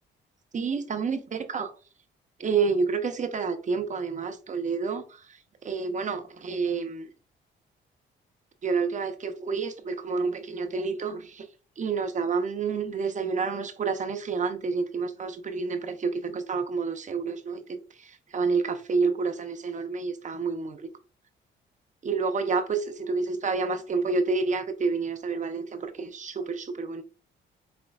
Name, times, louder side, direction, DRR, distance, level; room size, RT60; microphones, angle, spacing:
voice 1, 0.5-1.7 2.4-5.0 5.6-7.1 8.6-11.4 11.8-17.8 18.3-20.9 22.0-27.0, right 4 dB, 40° right, 0.7 m, -29 dB
5.1 x 2.9 x 2.3 m
cardioid pair, 90°, 20 cm